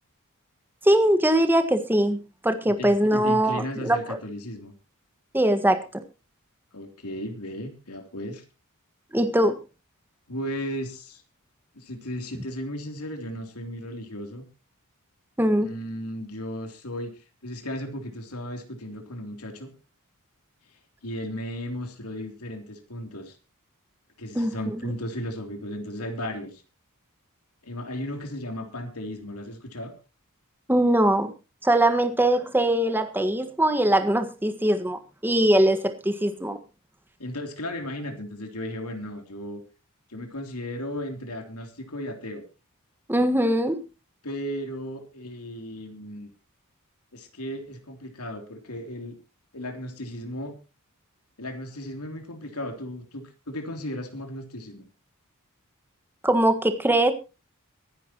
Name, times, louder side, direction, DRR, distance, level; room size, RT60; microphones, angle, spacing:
voice 1, 0.8-4.2 5.3-5.8 9.1-9.6 15.4-15.7 24.3-24.9 30.7-31.3 31.6-36.6 43.1-43.8 56.2-57.1, right 1 dB, 10° right, 9 dB, 1.5 m, -22 dB
voice 2, 2.6-4.7 6.7-8.4 10.3-11.2 11.7-14.4 15.6-19.7 21.0-23.4 24.2-26.6 27.6-29.9 37.2-39.6 40.1-42.4 44.2-46.3 47.1-49.2 49.5-50.6 51.4-54.9, equal, 80° left, 5 dB, 3.3 m, -35 dB
24.0 x 10.5 x 3.0 m, 0.31 s
head